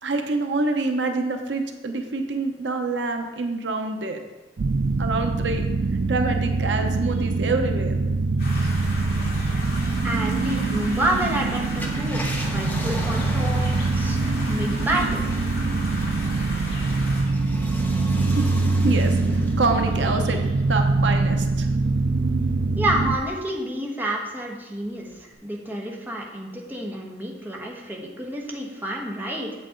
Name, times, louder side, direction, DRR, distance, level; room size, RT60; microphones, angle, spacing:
voice 1, 0.0-4.2 5.0-5.6 6.1-7.9 18.2-18.5 18.8-21.7, right 3 dB, 85° right, 5 dB, 0.8 m, -26 dB
sound 1, 4.6-23.2, right 3 dB, 55° right, 0.4 m, -24 dB
sound 2, 8.4-17.2, left 1 dB, 60° left, 2.2 m, -37 dB
voice 2, 10.0-13.6 13.9-14.2 14.5-15.3 22.8-29.5, right 1 dB, 10° right, -2 dB, 1.2 m, -29 dB
Car, 11.8-22.5 23.0-23.1 25.1-25.3, equal, 10° left, 1.0 m, -38 dB
7.9 x 7.7 x 3.8 m, 1.1 s
head